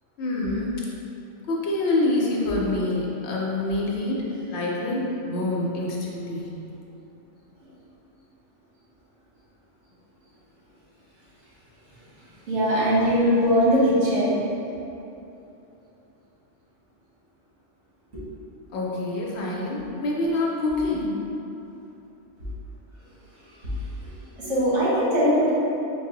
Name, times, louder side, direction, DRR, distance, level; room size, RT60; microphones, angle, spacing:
voice 1, 0.2-0.8 1.5-6.5 18.7-21.2, left 2 dB, 70° left, -3 dB, 0.9 m, -26 dB
voice 2, 12.5-14.4 24.4-25.5, equal, 80° right, -10 dB, 1.5 m, -20 dB
3.9 x 2.0 x 3.7 m, 2.9 s
omnidirectional pair, 1.2 m